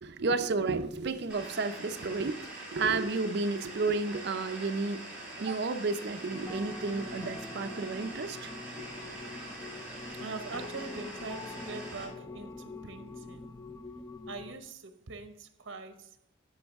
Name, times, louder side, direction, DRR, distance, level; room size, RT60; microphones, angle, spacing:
voice 1, 0.0-8.5, right 3 dB, 55° right, 0.5 m, -32 dB
sound 1, 1.3-12.0, right 2 dB, 5° right, 3.3 m, -44 dB
sound 2, 6.3-14.5, left 3 dB, 15° left, 0.4 m, -44 dB
voice 2, 10.1-13.5 14.3-16.4, right 3 dB, 75° right, 0.8 m, -43 dB
13.5 x 5.3 x 3.5 m
head